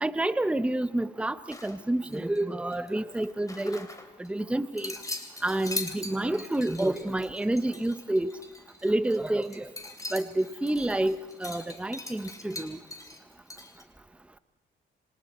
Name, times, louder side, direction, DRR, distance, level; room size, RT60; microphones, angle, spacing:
voice 1, 0.0-3.9 4.2-4.9 5.4-8.4 8.8-9.7 10.1-12.8, right 1 dB, 5° right, 13 dB, 0.8 m, -29 dB
sound 1, 1.5-2.4 2.7-4.3 4.8-13.8, left 2 dB, 15° left, 3.3 m, -41 dB
27.5 x 25.5 x 4.3 m, 1.1 s
cardioid pair, 90°, 20 cm